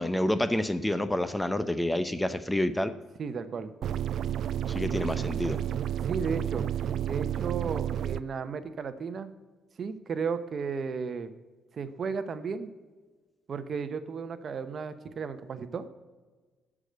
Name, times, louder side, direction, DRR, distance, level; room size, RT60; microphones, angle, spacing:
voice 1, 0.0-2.9 4.7-5.6, left 1 dB, 10° left, 12 dB, 0.7 m, -28 dB
voice 2, 3.2-3.7 6.0-6.7 7.0-9.3 9.8-11.3 11.7-12.7 13.5-15.9, right 5 dB, 50° right, 11 dB, 0.9 m, -34 dB
sound 1, 3.8-8.2, right 10 dB, 65° right, 0.3 m, -31 dB
12.0 x 4.9 x 7.8 m, 1.3 s
cardioid pair, 90°, 0 cm